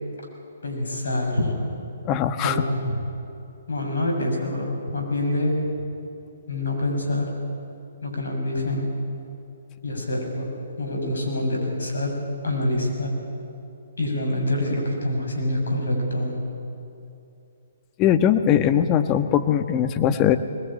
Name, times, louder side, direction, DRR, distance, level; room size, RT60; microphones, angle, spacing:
voice 1, 0.6-1.7 2.4-3.0 3.7-5.5 6.5-7.3 8.0-8.9 9.8-10.5 10.8-12.1 12.4-13.1 14.0-16.4, left 1 dB, 70° left, 2 dB, 6.8 m, -26 dB
voice 2, 2.1-2.6 18.0-20.4, left 9 dB, 25° left, 9 dB, 1.2 m, -20 dB
21.5 x 21.0 x 8.9 m, 2.6 s
figure-of-eight pair, 130°, 0 cm